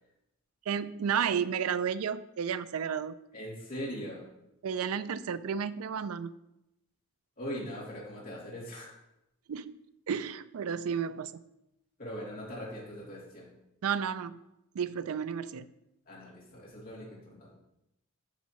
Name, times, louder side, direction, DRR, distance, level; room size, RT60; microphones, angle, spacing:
voice 1, 0.7-3.2 4.6-6.3 9.5-9.8 10.1-11.4 13.8-14.4 14.7-15.7, right 7 dB, 80° right, 15 dB, 0.4 m, -32 dB
voice 2, 3.3-4.2 7.4-8.9 12.0-13.5 16.1-17.5, equal, 45° left, -5 dB, 2.8 m, -41 dB
9.8 x 6.1 x 3.0 m, 0.86 s
head